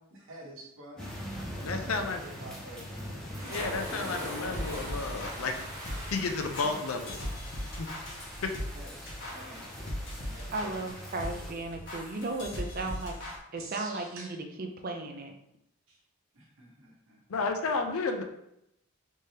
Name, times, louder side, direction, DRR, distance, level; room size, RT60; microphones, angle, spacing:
voice 1, 0.1-1.2 1.8-3.6 4.0-4.3 8.7-9.7 10.2-11.3 13.2-13.3 13.6-14.4 15.9-16.0 16.3-17.2, right 1 dB, 70° right, -2 dB, 1.0 m, -49 dB
Thunderstorm with Heavy Rain, 1.0-11.5, equal, 5° left, 0.6 m, -43 dB
voice 2, 1.6-2.2 3.5-5.6 6.1-7.2 7.8-7.9 8.4-8.5 17.3-18.2, left 4 dB, 75° left, 5 dB, 0.5 m, -32 dB
sound 1, 2.3-10.7, equal, 15° right, 1.1 m, -44 dB
sound 2, 4.2-13.4, left 1 dB, 55° left, 1.0 m, -40 dB
voice 3, 10.5-15.3, right 2 dB, 40° right, 3 dB, 0.5 m, -36 dB
3.5 x 3.3 x 2.8 m, 0.80 s
head